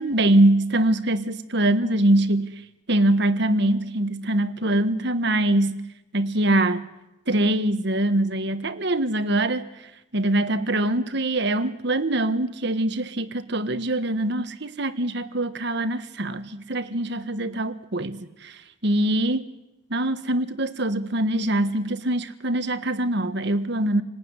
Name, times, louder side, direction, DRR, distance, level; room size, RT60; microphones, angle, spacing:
voice 1, 0.0-2.5 2.9-5.8 6.1-6.9 7.3-9.7 10.1-19.5 19.9-24.0, right 1 dB, 60° right, 11 dB, 1.6 m, -23 dB
28.0 x 19.0 x 9.9 m, 0.92 s
head